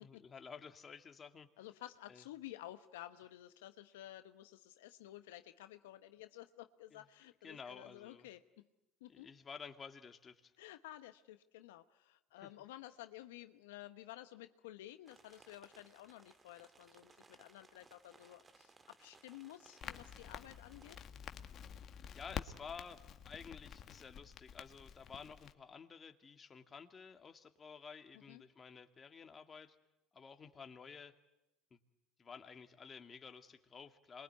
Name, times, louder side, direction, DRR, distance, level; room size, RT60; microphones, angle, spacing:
voice 1, 0.0-1.5 2.1-2.2 6.9-7.0 7.4-8.3 9.1-10.5 12.4-12.5 21.1-21.2 22.1-29.8 30.1-31.1 31.7-31.8 32.2-34.2, left 6 dB, 30° left, 6 dB, 2.4 m, -52 dB
voice 2, 1.6-8.4 9.0-9.3 10.6-21.0 28.3-28.4, left 14 dB, 85° left, 9 dB, 1.0 m, -53 dB
sound 1, 15.1-21.0, right 4 dB, 20° right, 1.8 m, -64 dB
Crackle, 19.8-25.5, left 8 dB, 45° left, 1.6 m, -49 dB
27.0 x 22.5 x 9.5 m, 0.92 s
supercardioid pair, 95°, 0 cm